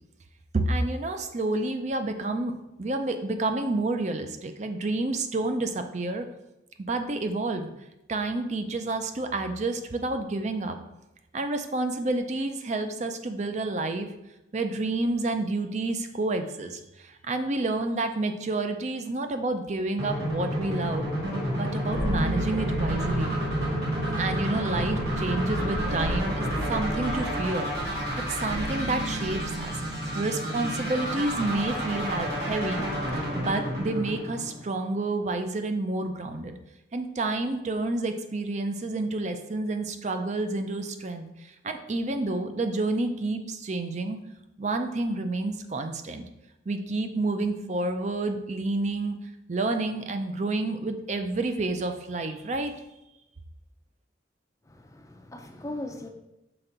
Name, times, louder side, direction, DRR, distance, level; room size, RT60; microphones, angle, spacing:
voice 1, 0.5-2.5 2.8-6.2 6.8-7.7 8.1-10.8 11.3-14.1 14.5-21.1 21.5-23.3 24.2-28.0 28.3-29.8 30.1-32.8 33.3-36.6 36.9-41.3 41.6-44.2 44.6-46.2 46.7-49.2 49.5-52.7, right 2 dB, 40° right, 7 dB, 0.5 m, -29 dB
sound 1, 20.0-34.9, equal, 60° right, 1.9 m, -31 dB
sound 2, 21.9-33.3, right 1 dB, 85° right, 1.3 m, -34 dB
voice 2, 54.7-56.1, left 1 dB, 15° left, 5 dB, 0.5 m, -39 dB
5.9 x 4.4 x 3.8 m, 0.92 s
head